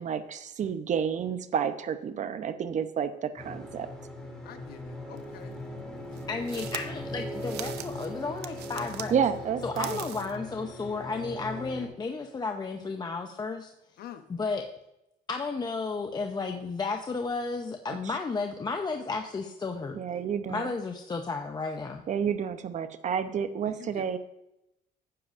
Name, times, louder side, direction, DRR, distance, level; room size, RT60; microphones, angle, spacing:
voice 1, 0.0-3.9 9.1-10.0 18.0-18.2 19.9-20.7 22.1-24.2, right 7 dB, 45° right, 10 dB, 0.8 m, -30 dB
sound 1, 3.4-11.9, left 1 dB, 5° left, 2.7 m, -39 dB
voice 2, 4.4-5.6 14.0-14.3 23.6-24.2, left 10 dB, 65° left, 8 dB, 1.1 m, -46 dB
sound 2, 5.2-5.3 6.1-9.1 9.6-10.4, right 12 dB, 80° right, 0.7 m, -41 dB
voice 3, 5.9-9.1 9.6-13.7 14.3-14.6 15.3-20.0 20.5-22.0, left 4 dB, 25° left, 4 dB, 0.7 m, -33 dB
12.5 x 8.6 x 2.6 m, 0.87 s
cardioid pair, 110°, 17 cm